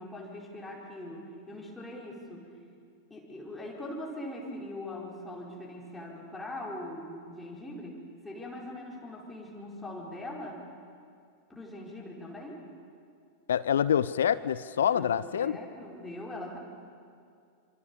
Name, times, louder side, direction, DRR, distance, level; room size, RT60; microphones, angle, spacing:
voice 1, 0.0-2.5 3.1-8.0 8.2-10.7 11.5-12.6 14.8-16.6, left 1 dB, 10° left, -3 dB, 5.1 m, -41 dB
voice 2, 13.5-15.6, left 9 dB, 65° left, 18 dB, 0.6 m, -26 dB
27.0 x 26.5 x 7.3 m, 2.3 s
figure-of-eight pair, 90°, 0 cm